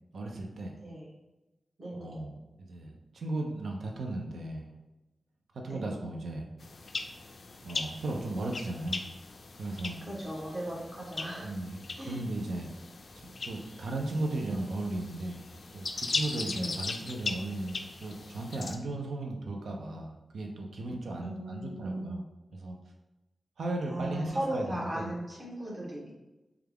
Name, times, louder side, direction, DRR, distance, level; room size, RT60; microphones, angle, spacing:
voice 1, 0.1-0.7 2.0-2.4 2.7-4.7 5.5-6.5 7.6-9.0 9.6-10.0 11.4-11.8 12.1-12.7 13.2-15.4 15.7-22.2 22.6-22.8 23.6-25.1, right 2 dB, 90° right, 1 dB, 0.5 m, -36 dB
voice 2, 0.8-1.2 1.8-2.2 5.7-5.9 10.0-11.5 12.0-12.2 16.5-16.9 21.2-22.2 23.9-26.1, right 1 dB, 35° right, -5 dB, 1.2 m, -37 dB
sound 1, 6.6-18.8, left 3 dB, 55° left, 0.3 m, -39 dB
3.3 x 2.3 x 3.4 m, 1.0 s
wide cardioid pair, 130°, 0 cm